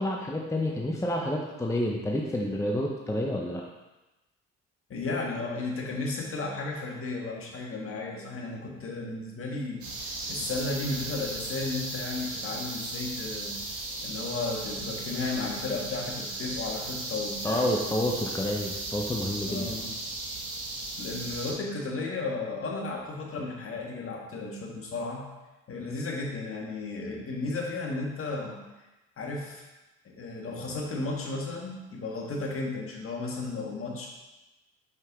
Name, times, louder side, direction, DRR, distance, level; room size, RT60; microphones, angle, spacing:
voice 1, 0.0-3.6 17.4-19.8, left 1 dB, 10° left, -1 dB, 0.8 m, -29 dB
voice 2, 4.9-13.6 14.0-17.7 18.2-18.3 19.5-20.0 21.0-25.2 25.7-28.6 29.2-29.6 30.0-34.1, left 3 dB, 45° left, -1 dB, 1.6 m, -34 dB
sound 1, 9.8-21.5, right 2 dB, 65° right, 1.7 m, -36 dB
5.5 x 5.3 x 3.6 m, 1.1 s
supercardioid pair, 70°, 32 cm